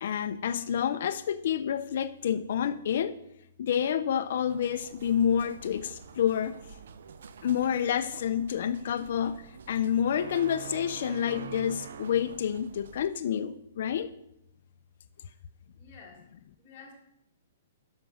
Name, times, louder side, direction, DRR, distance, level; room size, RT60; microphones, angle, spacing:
voice 1, 0.0-3.2 3.6-6.6 7.4-14.1, left 9 dB, 50° left, 8 dB, 0.5 m, -28 dB
sound 1, 4.5-13.1, right 7 dB, 60° right, 0.6 m, -46 dB
voice 2, 15.7-16.2 16.6-16.9, left 5 dB, 10° left, -7 dB, 1.6 m, -51 dB
10.5 x 5.9 x 6.3 m, 0.80 s
hypercardioid pair, 180°, 0 cm